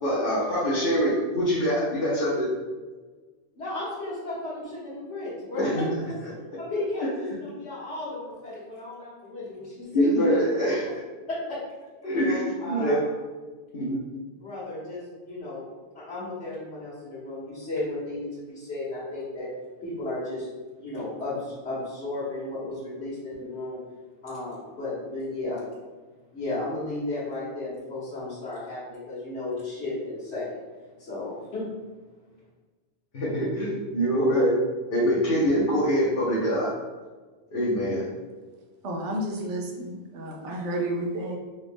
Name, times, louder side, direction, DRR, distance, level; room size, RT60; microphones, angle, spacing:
voice 1, 0.0-2.5 5.6-5.9 7.0-7.1 9.9-10.8 12.0-13.0 13.7-14.0 33.1-34.6 34.9-36.7 37.5-38.1, equal, 55° left, -8 dB, 1.0 m, -24 dB
voice 2, 3.6-6.2 6.6-10.4 11.3-11.6 12.1-13.1 14.3-15.6 16.0-19.5 19.8-20.5 20.8-23.8 24.2-25.6 26.3-30.5 31.0-31.7, left 2 dB, 70° left, -13 dB, 1.6 m, -34 dB
voice 3, 38.8-41.4, right 1 dB, 80° right, 1 dB, 1.0 m, -31 dB
4.1 x 2.4 x 3.5 m, 1.3 s
omnidirectional pair, 1.2 m